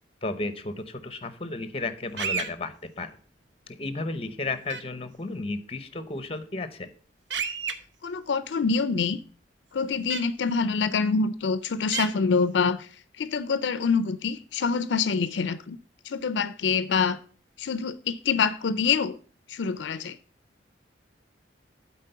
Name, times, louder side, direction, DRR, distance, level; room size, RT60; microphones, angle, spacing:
voice 1, 0.2-3.2 3.8-6.9, left 2 dB, 30° left, 0.8 m, -33 dB
sound 1, 2.2-2.5 4.7-4.8 7.3-7.7 10.1-10.2 11.9-12.1, right 6 dB, 70° right, 0.9 m, -29 dB
voice 2, 8.0-9.2 9.7-12.9 13.2-15.8 16.0-17.2 17.6-19.2 19.5-20.2, left 5 dB, 75° left, 0.4 m, -26 dB
8.3 x 4.2 x 6.6 m
head